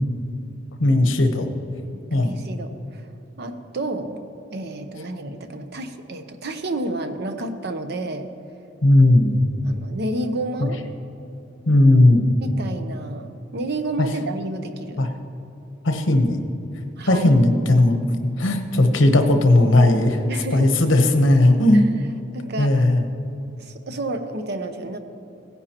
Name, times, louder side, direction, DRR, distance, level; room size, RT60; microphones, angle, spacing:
voice 1, 0.8-1.5 2.1-2.4 8.8-9.4 11.7-12.3 14.0-14.1 15.0-15.1 15.8-16.4 17.1-18.0 18.4-20.2 20.5-21.9 22.6-23.0, left 1 dB, 80° left, 6 dB, 1.0 m, -16 dB
voice 2, 2.1-3.1 3.4-4.2 4.5-8.3 9.6-10.8 12.4-15.1 17.0-17.3 20.3-20.7 21.7-21.8 22.3-22.7 23.6-25.0, right 2 dB, 60° right, 8 dB, 0.8 m, -30 dB
17.0 x 10.0 x 3.0 m, 2.9 s
head